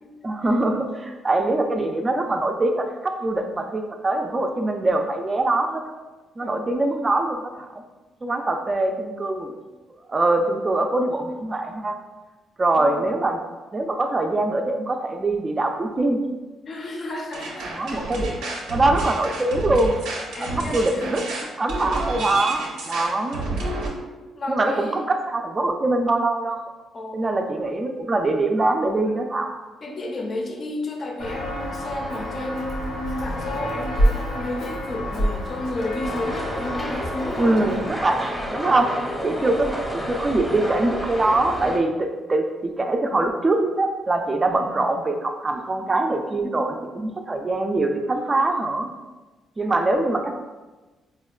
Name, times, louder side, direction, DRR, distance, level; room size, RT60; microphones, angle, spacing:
voice 1, 0.2-5.9 6.4-7.7 8.2-9.5 10.1-12.0 12.6-13.4 13.7-16.2 17.8-18.4 18.7-19.9 20.4-21.2 21.6-23.4 24.5-26.6 27.1-29.5 37.4-38.9 39.2-48.9 49.6-50.3, right 2 dB, 30° right, 5 dB, 0.4 m, -23 dB
voice 2, 16.7-18.0 18.4-18.8 20.3-21.2 24.3-25.1 26.9-27.3 29.8-37.8 39.3-39.6 46.1-46.9 49.6-49.7, left 1 dB, 40° left, 2 dB, 0.5 m, -32 dB
sound 1, 17.3-23.9, right 2 dB, 90° right, 0.6 m, -30 dB
Walk footsteps, 31.2-37.9, equal, 90° left, 0.8 m, -27 dB
sound 2, 36.0-41.8, equal, ahead, 0.7 m, -30 dB
4.2 x 2.1 x 2.3 m, 1.2 s
cardioid pair, 90°, 0 cm